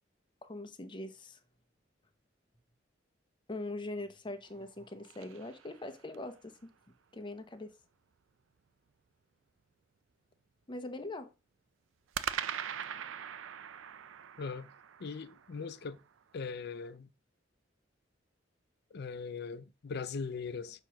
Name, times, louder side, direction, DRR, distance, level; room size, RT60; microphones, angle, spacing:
voice 1, 0.4-1.4 3.5-6.7 7.1-7.7 10.7-11.3, left 2 dB, 25° left, 0.8 m, -42 dB
sound 1, 4.4-6.3 12.1-16.4, right 9 dB, 80° right, 0.4 m, -42 dB
voice 2, 14.4-14.7 15.0-16.0 16.3-17.1 18.9-20.8, left 5 dB, 60° left, 0.5 m, -40 dB
6.7 x 3.0 x 5.8 m
head